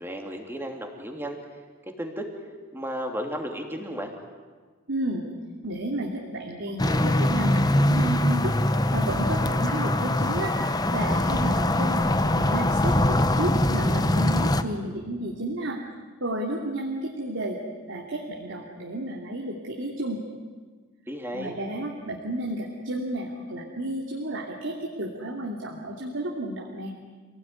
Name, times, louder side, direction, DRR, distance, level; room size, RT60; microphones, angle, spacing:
voice 1, 0.0-1.4 2.0-2.3 2.7-4.1 21.1-21.5, equal, 10° right, 2 dB, 3.0 m, -33 dB
voice 2, 4.9-5.2 5.6-10.5 10.9-12.0 12.3-15.8 16.2-17.6 17.9-20.2 21.3-26.9, right 1 dB, 60° right, -1 dB, 2.8 m, -32 dB
sound 1, 6.8-14.6, left 1 dB, 20° left, 0.9 m, -23 dB
27.5 x 18.0 x 9.9 m, 1.5 s
head